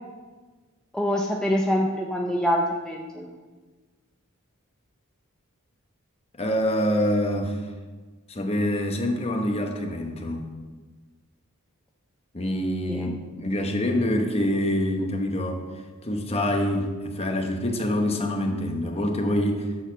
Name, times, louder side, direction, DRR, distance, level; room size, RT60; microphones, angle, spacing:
voice 1, 0.9-3.3 12.9-13.1, equal, 5° left, -1 dB, 0.5 m, -25 dB
voice 2, 6.4-7.6 8.3-10.5 12.3-15.6 16.0-19.7, left 1 dB, 30° left, 3 dB, 1.0 m, -26 dB
8.9 x 4.1 x 6.7 m, 1.4 s
head